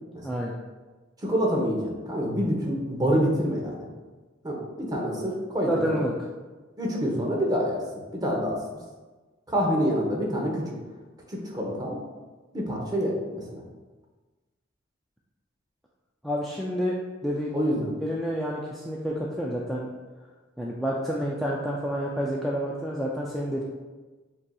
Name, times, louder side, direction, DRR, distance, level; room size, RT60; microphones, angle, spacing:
voice 1, 0.2-0.6 5.7-6.1 16.2-17.0 17.2-17.5 18.0-19.9 20.6-23.6, equal, ahead, -4 dB, 0.3 m, -29 dB
voice 2, 1.2-3.9 4.4-6.0 6.8-7.8 8.1-8.6 9.5-10.7 11.3-12.0 12.5-13.6 17.5-17.9, equal, 20° right, -2 dB, 0.8 m, -27 dB
7.5 x 2.7 x 2.3 m, 1.3 s
head